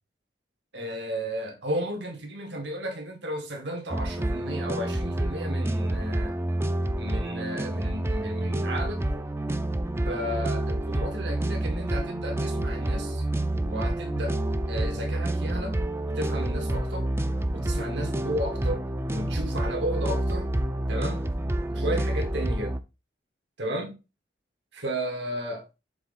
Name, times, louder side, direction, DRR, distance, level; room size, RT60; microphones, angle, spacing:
voice 1, 0.7-6.4 7.0-9.0 10.0-13.2 13.6-14.4 14.7-15.8 16.1-17.1 17.5-20.5 20.9-21.2 21.7-22.8 23.6-23.9 24.7-25.6, right 1 dB, 80° right, 1.8 m, -33 dB
sound 1, 3.9-22.8, right 1 dB, 15° right, 0.4 m, -28 dB
7.2 x 3.8 x 4.1 m
head